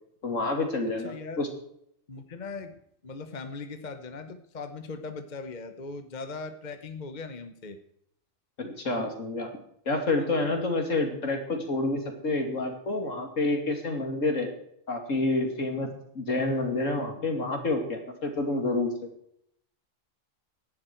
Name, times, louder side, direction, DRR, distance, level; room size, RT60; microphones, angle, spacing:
voice 1, 0.2-1.5 8.6-9.5 9.9-14.5 14.9-18.9, left 2 dB, 70° left, 4 dB, 3.0 m, -28 dB
voice 2, 1.0-1.4 2.1-7.8 10.4-10.5, left 4 dB, 35° left, 8 dB, 1.2 m, -39 dB
18.5 x 11.5 x 4.6 m, 0.72 s
omnidirectional pair, 1.4 m